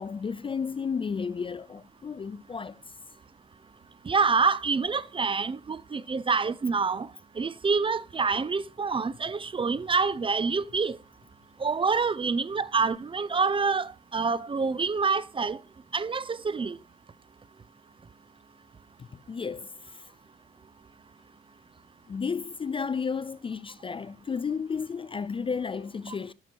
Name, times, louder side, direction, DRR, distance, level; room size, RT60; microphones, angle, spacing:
voice 1, 0.0-3.0 19.0-20.1 22.1-26.3, left 5 dB, 25° left, 0.4 m, -33 dB
voice 2, 4.1-7.1 7.4-11.0 11.6-15.6 15.9-16.8 26.1-26.2, right 4 dB, 25° right, 0.5 m, -27 dB
11.0 x 6.0 x 4.5 m
cardioid pair, 90°, 20 cm